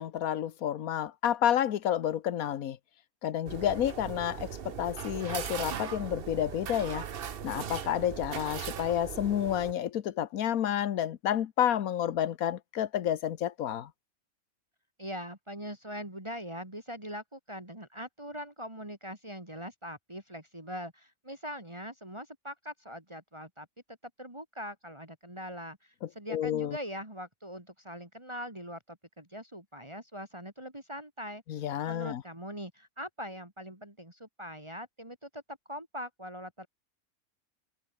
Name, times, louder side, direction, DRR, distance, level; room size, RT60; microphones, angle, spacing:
voice 1, 0.0-2.8 3.2-7.0 7.4-13.9 26.0-26.8 31.5-32.2, left 10 dB, 75° left, 1.4 m, -30 dB
sound 1, 3.5-9.7, right 8 dB, 45° right, 0.9 m, -39 dB
voice 2, 15.0-23.7 24.2-31.4 31.8-36.7, equal, 20° right, 3.5 m, -42 dB
omnidirectional pair, 1.5 m